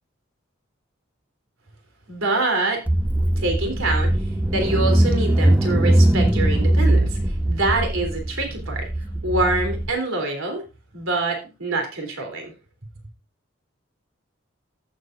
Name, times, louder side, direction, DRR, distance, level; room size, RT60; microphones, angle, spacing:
voice 1, 2.1-2.8 3.4-4.1 4.5-7.2 7.5-8.9 9.2-10.6 10.9-12.5, right 2 dB, 75° right, 3 dB, 3.5 m, -25 dB
Car / Engine, 2.9-9.9, right 1 dB, 10° right, 0.5 m, -20 dB
14.0 x 8.1 x 2.6 m, 0.29 s
head